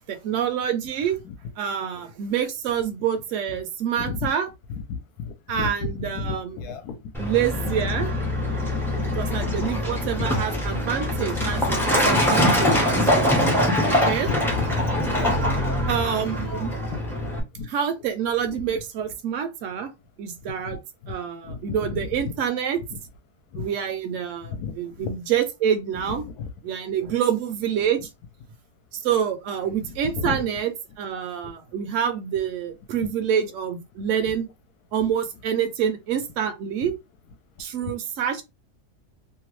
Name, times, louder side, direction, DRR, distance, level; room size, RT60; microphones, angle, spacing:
voice 1, 0.2-1.2 1.6-4.5 5.5-6.6 7.2-8.1 9.0-13.4 13.8-14.3 15.9-16.7 17.7-19.9 20.2-20.8 21.1-22.8 23.5-26.2 26.6-28.1 28.9-30.7 31.0-34.5 34.9-36.9 37.6-38.4, right 8 dB, 60° right, 0.9 m, -27 dB
voice 2, 4.0-4.3 4.7-7.0 8.5-8.6 9.6-9.7 10.2-10.4 11.3-11.4 14.2-15.6 16.5-16.6 16.9-17.3 17.5-17.7 18.5-18.6 20.6-20.8 21.0-21.1 21.4-22.3 22.9-23.0 23.5-23.7 24.4-25.1 26.1-26.5 30.0-30.4 33.0-33.1 36.8-36.9 37.8-37.9, left 5 dB, 75° left, 1.1 m, -33 dB
Truck, 7.1-17.4, left 1 dB, 5° left, 0.4 m, -23 dB
2.8 x 2.2 x 3.0 m
omnidirectional pair, 1.7 m